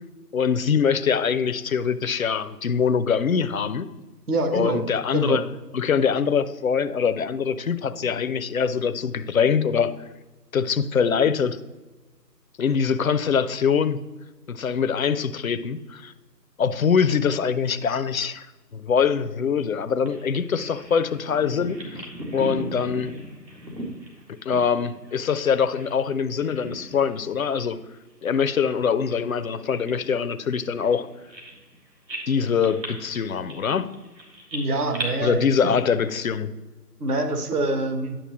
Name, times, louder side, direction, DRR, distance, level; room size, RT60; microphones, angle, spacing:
voice 1, 0.3-3.9 4.5-5.4 5.7-9.9 10.5-11.6 12.6-14.0 14.5-16.1 16.6-18.5 18.7-22.0 22.3-23.1 24.3-27.8 28.2-31.1 32.3-33.9 35.2-36.5, left 6 dB, 60° left, 0.5 m, -23 dB
voice 2, 4.3-4.8 5.1-5.4 34.5-35.5 37.0-38.2, right 2 dB, 65° right, 1.3 m, -25 dB
Bird vocalization bird call bird song, 20.1-26.0 26.3-27.2 27.5-27.7 28.3-31.8 32.1-35.1, right 1 dB, 85° right, 2.4 m, -38 dB
10.0 x 6.6 x 3.0 m
figure-of-eight pair, 155°, 50 cm